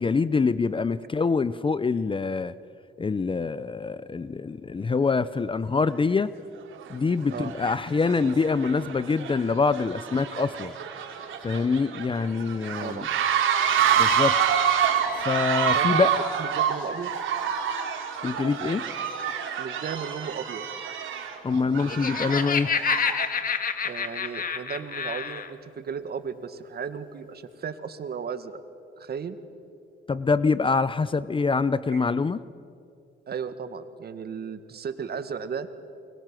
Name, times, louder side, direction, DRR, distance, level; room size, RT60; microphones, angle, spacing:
voice 1, 0.0-2.5 3.0-6.3 6.9-10.7 11.4-13.0 14.0-14.4 15.2-16.1 18.2-18.8 21.4-22.7 30.1-32.4, left 4 dB, 25° left, 15 dB, 0.7 m, -25 dB
sound 1, 5.9-6.0 6.7-6.9 7.3-23.3, right 8 dB, 75° right, 3.6 m, -27 dB
voice 2, 12.8-13.2 15.7-16.0 16.4-17.1 19.6-20.6 23.8-28.6 29.0-29.4 31.9-32.0 33.3-35.7, right 6 dB, 55° right, 10 dB, 1.9 m, -35 dB
Laughter, 21.6-25.5, left 6 dB, 45° left, 1.9 m, -28 dB
29.0 x 23.0 x 7.7 m, 2.5 s
cardioid pair, 90°, 20 cm